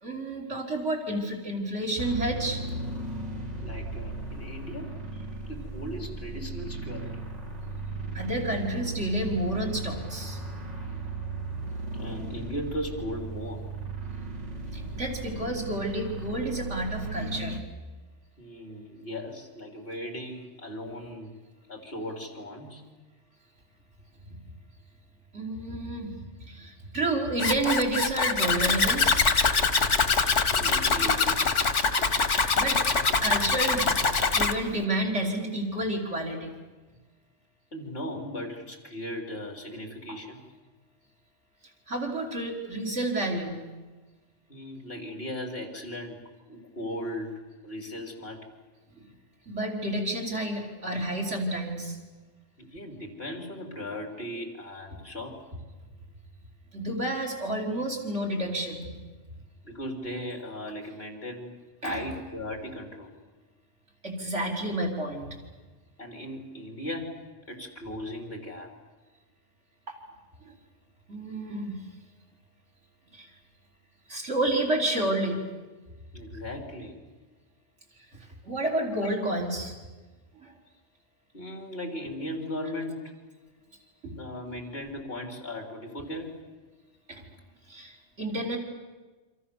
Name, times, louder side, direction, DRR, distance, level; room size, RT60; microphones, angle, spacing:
voice 1, 0.0-2.6 8.1-10.4 14.7-17.6 25.3-26.1 26.4-29.3 32.3-33.9 34.3-36.5 40.1-40.2 41.9-43.6 48.9-49.1 49.5-52.0 56.7-58.9 61.8-62.0 64.0-65.3 69.9-70.0 70.4-70.6 71.1-71.8 73.1-73.3 74.1-75.4 78.0-78.1 78.4-79.8 80.4-80.5 84.0-84.1 87.1-87.2 87.7-88.6, right 1 dB, 80° right, 2 dB, 4.6 m, -30 dB
sound 1, 2.0-17.6, right 2 dB, 35° right, 1.8 m, -36 dB
voice 2, 3.6-5.0 5.4-7.2 11.9-13.6 18.4-21.3 21.7-22.8 30.4-31.4 37.7-40.4 42.8-42.9 44.5-46.2 46.5-48.5 52.6-55.4 59.6-61.5 61.8-63.1 66.0-67.2 67.5-68.7 76.1-77.0 79.0-79.1 81.3-83.1 84.1-86.3, left 1 dB, 55° left, 3 dB, 4.0 m, -37 dB
Zipper (clothing), 27.4-34.5, left 4 dB, 85° left, 1.8 m, -24 dB
27.5 x 26.0 x 7.1 m, 1.3 s
omnidirectional pair, 1.2 m